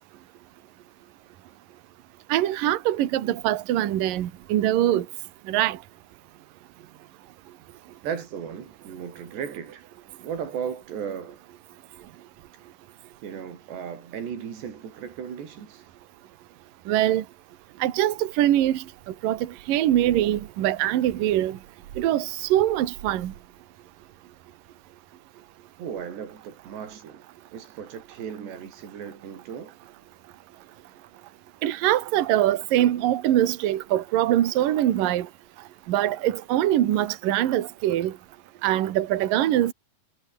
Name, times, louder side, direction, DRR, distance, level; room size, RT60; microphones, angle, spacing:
voice 1, 2.3-5.1 5.5-5.8 16.9-17.2 17.8-18.8 19.2-21.6 22.0-23.3 31.6-35.3 35.9-38.1 38.6-39.7, right 13 dB, 60° right, 3.0 m, -23 dB
voice 2, 8.0-9.9 10.2-11.4 12.6-12.7 13.2-15.8 25.8-27.3 27.5-29.7, right 7 dB, 85° right, 6.0 m, -36 dB
omnidirectional pair, 4.8 m